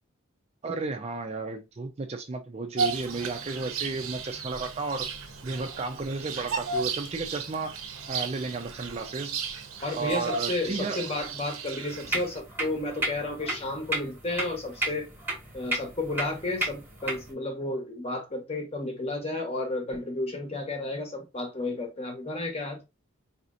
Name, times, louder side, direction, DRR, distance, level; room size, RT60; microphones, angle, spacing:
voice 1, 0.6-5.1 5.4-7.8 8.1-9.4 9.9-11.0, right 3 dB, 30° right, 0.4 m, -33 dB
Bird vocalization bird call bird song, 2.8-12.4, right 5 dB, 90° right, 0.7 m, -35 dB
voice 2, 9.8-15.1 15.5-22.8, left 2 dB, 30° left, 1.0 m, -32 dB
sound 1, 11.9-17.3, right 1 dB, 10° right, 1.0 m, -33 dB
4.1 x 2.8 x 2.5 m
head